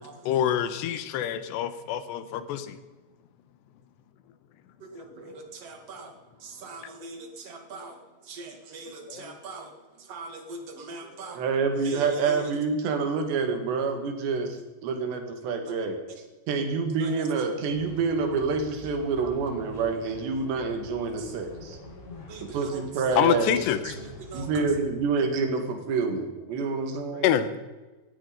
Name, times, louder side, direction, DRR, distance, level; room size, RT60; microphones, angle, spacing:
voice 1, 0.2-2.8 9.1-9.4 23.2-23.9 27.1-27.6, left 10 dB, 85° left, 12 dB, 3.2 m, -26 dB
voice 2, 4.8-6.1 6.4-11.5 11.8-12.5 17.0-17.3 19.2-19.4 21.1-21.3 22.3-22.8 23.1-23.2 23.8-24.6, right 3 dB, 45° right, 4 dB, 2.7 m, -42 dB
voice 3, 11.4-16.0 16.5-21.8 22.4-23.6 24.3-27.3, right 4 dB, 75° right, 6 dB, 4.2 m, -27 dB
sound 1, 17.7-24.8, left 1 dB, 60° left, 5.3 m, -45 dB
18.0 x 14.0 x 5.3 m, 1.2 s
omnidirectional pair, 5.0 m